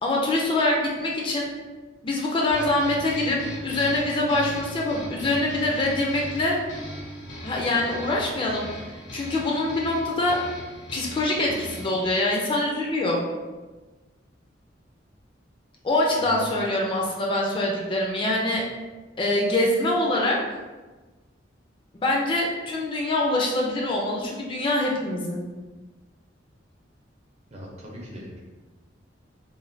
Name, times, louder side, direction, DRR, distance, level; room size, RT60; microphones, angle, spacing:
voice 1, 0.0-1.5 2.0-3.4 3.6-6.6 7.4-10.4 10.9-13.2 15.8-18.6 19.2-20.4 22.0-25.4, left 2 dB, 25° left, -2 dB, 0.3 m, -24 dB
sound 1, 2.5-12.1, left 1 dB, 80° left, 0.7 m, -38 dB
voice 2, 16.1-16.5 27.5-28.4, left 1 dB, 35° right, -3 dB, 0.5 m, -39 dB
3.1 x 2.1 x 2.5 m, 1.3 s
head